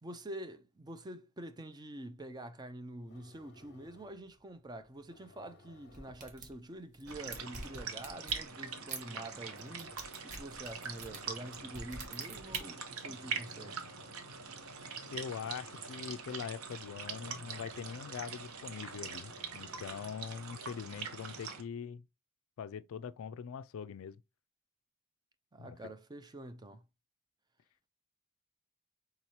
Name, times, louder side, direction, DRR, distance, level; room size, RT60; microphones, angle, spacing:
voice 1, 0.0-13.8 25.5-26.8, right 1 dB, 20° right, 0.4 m, -46 dB
sound 1, 3.0-20.4, left 2 dB, 45° left, 0.8 m, -61 dB
sound 2, 5.9-6.5 6.9-8.4 8.9-9.0 9.6-12.6, right 3 dB, 35° right, 1.1 m, -46 dB
sound 3, 7.1-21.6, right 5 dB, 70° right, 0.9 m, -43 dB
voice 2, 15.0-22.0 22.6-24.2 25.6-25.9, left 7 dB, 65° left, 0.3 m, -43 dB
4.5 x 3.8 x 2.8 m
head